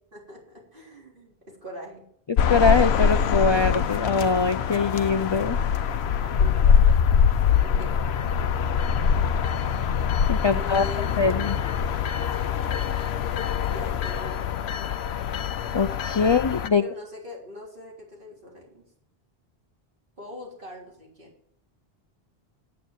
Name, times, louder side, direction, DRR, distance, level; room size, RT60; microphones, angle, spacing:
voice 1, 0.1-2.1 6.4-6.8 7.6-8.0 10.5-11.6 13.7-14.5 16.2-16.4 16.8-18.8 20.2-21.3, left 1 dB, 55° right, -3 dB, 3.9 m, -42 dB
voice 2, 2.3-5.6 10.3-10.9 11.2-11.6 15.7-16.8, left 4 dB, 45° left, 11 dB, 0.3 m, -23 dB
sound 1, 2.4-16.7, left 7 dB, 85° left, 0.9 m, -23 dB
9.5 x 8.7 x 7.2 m, 0.70 s
omnidirectional pair, 1.1 m